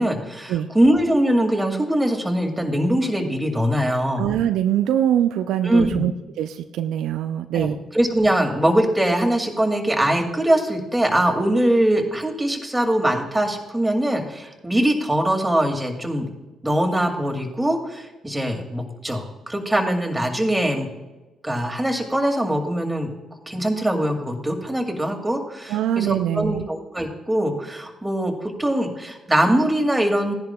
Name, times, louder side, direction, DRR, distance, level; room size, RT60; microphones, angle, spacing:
voice 1, 0.0-4.2 5.6-6.0 7.5-16.3 16.6-20.9 21.4-23.1 23.5-30.3, right 1 dB, 10° right, 3 dB, 2.2 m, -22 dB
voice 2, 4.2-6.1 6.4-7.8 25.7-26.7, right 10 dB, 70° right, 9 dB, 0.4 m, -23 dB
15.5 x 10.5 x 2.3 m, 1.1 s
hypercardioid pair, 45°, 0 cm